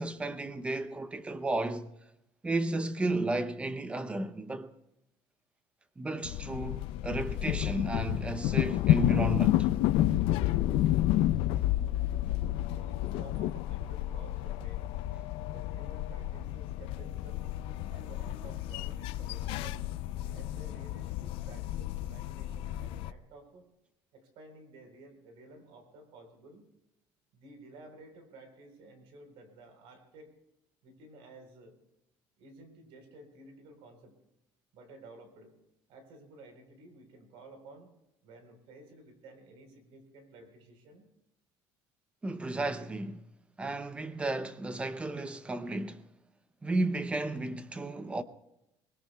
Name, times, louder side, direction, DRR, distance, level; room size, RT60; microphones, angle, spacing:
voice 1, 0.0-1.9 2.4-4.7 6.0-9.7 42.2-43.2 43.6-46.0 46.6-48.2, right 2 dB, 10° right, 0.7 m, -33 dB
sound 1, 6.2-23.1, left 13 dB, 70° left, 0.5 m, -30 dB
voice 2, 12.7-15.0 15.5-17.5 17.9-19.8 20.3-23.7 24.1-26.7 27.3-30.3 30.8-31.8 32.4-34.2 34.7-35.6 35.9-37.9 38.2-41.1, right 2 dB, 65° right, 4.1 m, -53 dB
24.0 x 20.0 x 2.3 m
cardioid pair, 170°, 10 cm